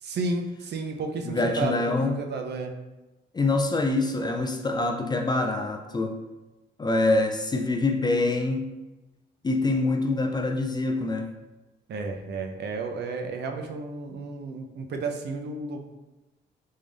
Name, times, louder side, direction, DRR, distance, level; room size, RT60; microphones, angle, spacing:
voice 1, 0.0-2.7 11.9-15.9, right 3 dB, 60° right, 4 dB, 0.5 m, -32 dB
voice 2, 1.3-2.2 3.3-6.2 6.8-8.7 9.4-11.3, left 2 dB, 20° left, 4 dB, 0.3 m, -25 dB
3.7 x 2.6 x 3.3 m, 1.1 s
cardioid pair, 90°, 20 cm